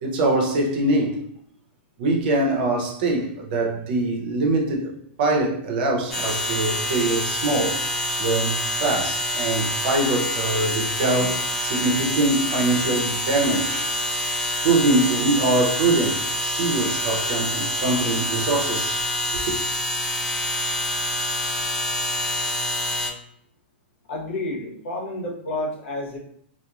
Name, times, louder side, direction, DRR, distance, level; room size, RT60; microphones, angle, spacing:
voice 1, 0.0-1.2 2.0-4.9 5.2-7.8 8.2-13.9 14.6-19.0 19.3-19.5, right 2 dB, 50° right, 0.7 m, -23 dB
sound 1, 6.1-23.1, left 1 dB, 5° left, 0.5 m, -26 dB
voice 2, 24.1-26.2, left 2 dB, 80° left, 1.0 m, -30 dB
2.9 x 2.1 x 2.3 m
supercardioid pair, 160°, 6 cm